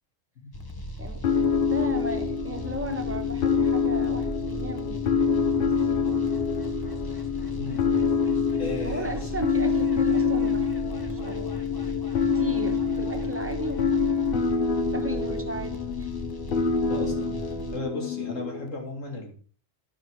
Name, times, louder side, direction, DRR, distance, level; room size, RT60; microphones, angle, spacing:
sound 1, 0.5-17.8, right 1 dB, 20° left, 0.8 m, -37 dB
voice 1, 1.0-5.3 5.5-6.5 7.0-7.2 8.8-11.8 12.2-13.8 14.9-16.1, right 1 dB, 10° right, 5 dB, 1.1 m, -36 dB
sound 2, 1.2-18.7, left 5 dB, 55° left, 0.8 m, -26 dB
voice 2, 8.6-9.3 16.9-17.3 17.7-19.3, left 2 dB, 75° left, 0 dB, 2.6 m, -35 dB
11.5 x 5.7 x 4.6 m, 0.41 s
omnidirectional pair, 1.3 m